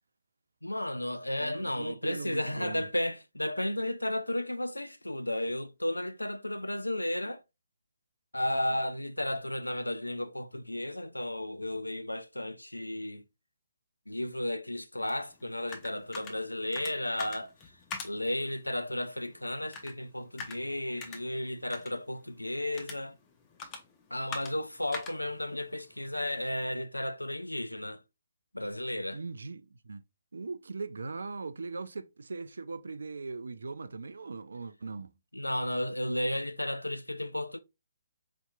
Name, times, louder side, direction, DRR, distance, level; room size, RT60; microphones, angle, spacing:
voice 1, 0.6-7.4 8.3-13.2 14.1-17.7 18.0-23.2 24.1-28.0 28.5-29.2 35.3-37.6, left 1 dB, 85° left, 0.4 m, -33 dB
voice 2, 1.4-2.9 8.5-8.7 29.1-30.0 30.3-35.1, right 4 dB, 65° right, 0.3 m, -40 dB
sound 1, 15.1-26.7, left 4 dB, 20° left, 0.6 m, -46 dB
4.2 x 2.9 x 2.3 m
figure-of-eight pair, 135°, 0 cm